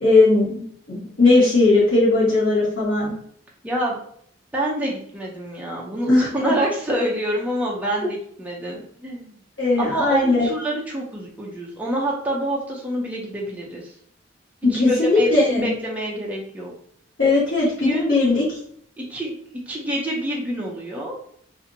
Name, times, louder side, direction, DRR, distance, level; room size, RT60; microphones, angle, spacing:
voice 1, 0.0-3.1 6.1-6.5 9.6-10.5 14.6-15.7 17.2-18.4, left 2 dB, 90° left, -9 dB, 1.2 m, -18 dB
voice 2, 3.6-4.0 4.5-9.4 9.8-13.9 14.7-16.7 17.9-18.0 19.0-19.3 19.7-21.2, right 1 dB, 10° right, -4 dB, 0.4 m, -27 dB
2.8 x 2.5 x 2.6 m, 0.64 s
head